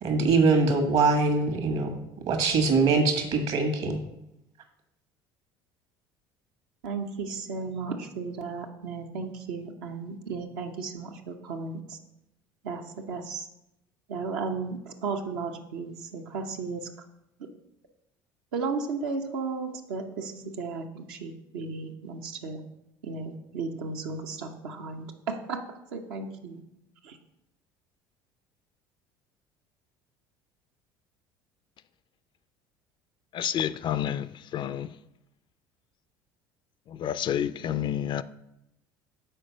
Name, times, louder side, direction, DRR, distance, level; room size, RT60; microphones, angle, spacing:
voice 1, 0.0-1.9 2.3-4.0, right 3 dB, 60° right, 1.4 m, -23 dB
voice 2, 6.8-12.0 12.6-13.5 14.1-16.9 17.4-17.5 18.5-22.6 23.0-26.6 27.0-27.2, right 4 dB, 75° right, 0.7 m, -35 dB
voice 3, 33.3-34.9 36.9-38.2, left 10 dB, 40° left, 0.3 m, -29 dB
6.7 x 4.4 x 5.1 m
hypercardioid pair, 65°, 12 cm